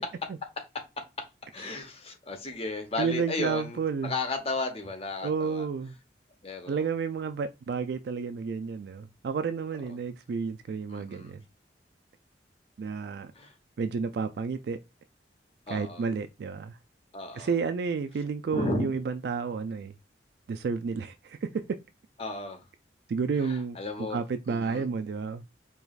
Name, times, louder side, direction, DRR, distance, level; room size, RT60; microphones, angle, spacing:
voice 1, 1.5-5.7 6.4-6.9 10.9-11.3 13.3-13.5 15.7-16.1 17.1-17.5 18.5-18.9 22.2-22.6 23.4-24.2 24.5-24.9, left 2 dB, 35° left, 0.9 m, -34 dB
voice 2, 3.0-4.1 5.2-5.9 6.7-11.4 12.8-13.3 13.8-14.8 15.7-16.8 17.4-19.9 20.5-21.5 23.1-23.8 24.1-25.4, right 5 dB, 65° right, 0.3 m, -31 dB
4.6 x 3.0 x 2.3 m
head